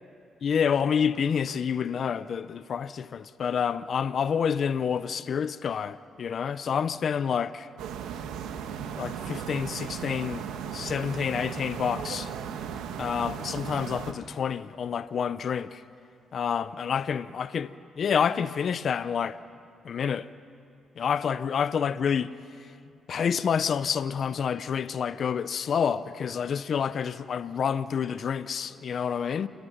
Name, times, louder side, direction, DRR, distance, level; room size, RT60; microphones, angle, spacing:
voice 1, 0.4-7.7 9.0-10.4 10.7-12.3 13.0-15.8 16.3-17.7 18.0-19.4 19.8-20.3 21.0-22.3 23.1-29.5, left 7 dB, 55° left, 0.7 m, -28 dB
sound 1, 7.8-14.1, right 8 dB, 90° right, 1.4 m, -36 dB
29.0 x 13.5 x 9.8 m
cardioid pair, 90°, 0 cm